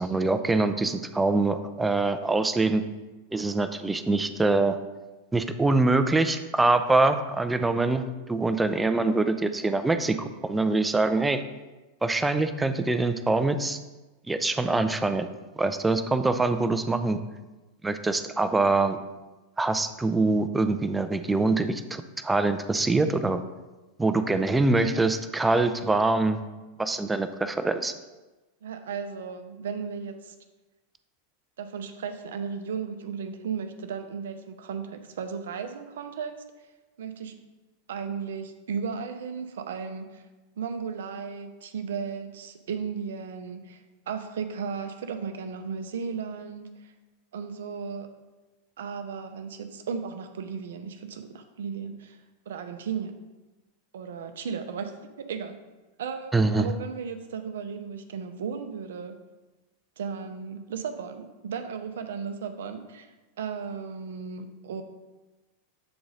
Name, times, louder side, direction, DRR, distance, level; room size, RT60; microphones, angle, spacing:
voice 1, 0.0-2.8 3.3-4.8 5.3-11.4 12.0-13.8 14.3-15.3 15.6-17.2 17.8-19.0 19.6-23.4 24.0-26.4 26.8-27.9 56.3-56.7, right 2 dB, 10° right, 9 dB, 0.4 m, -24 dB
voice 2, 28.6-30.3 31.6-36.4 37.0-37.4 37.9-40.2 40.6-46.9 47.3-48.1 48.8-52.2 52.5-53.2 53.9-55.6 56.0-59.2 60.0-64.8, right 6 dB, 60° right, 8 dB, 0.6 m, -35 dB
7.8 x 3.9 x 3.8 m, 1.1 s
figure-of-eight pair, 90°, 0 cm